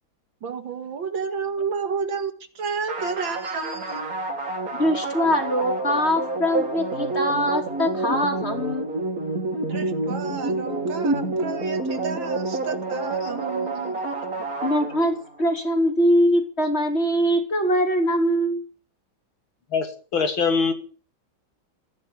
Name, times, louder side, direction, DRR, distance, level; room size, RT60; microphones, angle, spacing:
voice 1, 0.4-4.1 9.7-14.0, right 5 dB, 75° right, 2.7 m, -31 dB
sound 1, 2.9-15.4, right 2 dB, 45° right, 2.9 m, -28 dB
voice 2, 4.8-8.9 14.6-18.6, equal, 30° left, 3.4 m, -22 dB
voice 3, 19.7-20.7, left 5 dB, 80° left, 3.3 m, -23 dB
15.0 x 11.0 x 8.9 m
omnidirectional pair, 2.2 m